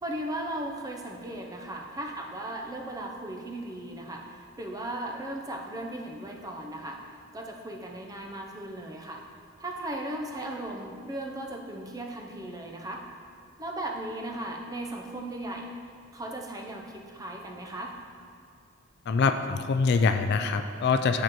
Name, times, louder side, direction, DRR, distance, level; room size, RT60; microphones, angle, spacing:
voice 1, 0.0-7.0 7.3-9.2 9.6-13.0 13.6-15.7 16.1-17.9, right 1 dB, 20° right, 1 dB, 0.6 m, -37 dB
voice 2, 19.1-21.2, left 4 dB, 55° left, 7 dB, 0.3 m, -24 dB
9.7 x 4.6 x 3.0 m, 2.4 s
head